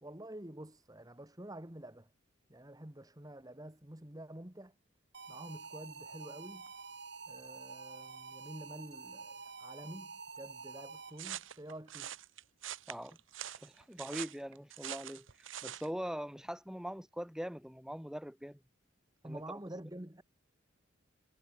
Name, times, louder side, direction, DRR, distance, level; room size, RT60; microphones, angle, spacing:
voice 1, 0.0-2.1 2.5-4.7 5.3-6.7 7.3-12.1 19.2-20.2, right 1 dB, 20° right, 1.9 m, -48 dB
sound 1, 5.1-11.4, right 4 dB, 60° right, 6.7 m, -48 dB
sound 2, 11.2-15.9, right 11 dB, 80° right, 1.1 m, -44 dB
voice 2, 12.9-13.2 13.6-15.3 15.6-18.6 19.2-19.4, equal, 5° right, 1.4 m, -42 dB
head